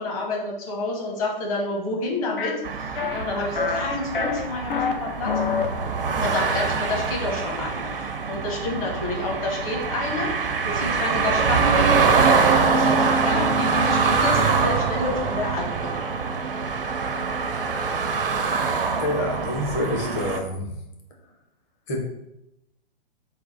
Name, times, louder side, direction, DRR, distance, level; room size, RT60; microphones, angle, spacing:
voice 1, 0.0-5.3 6.2-10.3 10.6-16.0, left 2 dB, 35° left, -1 dB, 1.0 m, -29 dB
sound 1, 2.4-2.5 3.0-3.2 3.6-3.9 4.1-4.9 5.2-5.7, left 5 dB, 65° left, 0.5 m, -25 dB
sound 2, 2.6-20.4, right 5 dB, 70° right, 0.5 m, -24 dB
voice 2, 19.0-20.8 21.9-22.0, left 1 dB, 20° left, 1 dB, 0.6 m, -27 dB
4.0 x 2.3 x 3.8 m, 0.85 s
figure-of-eight pair, 120°, 29 cm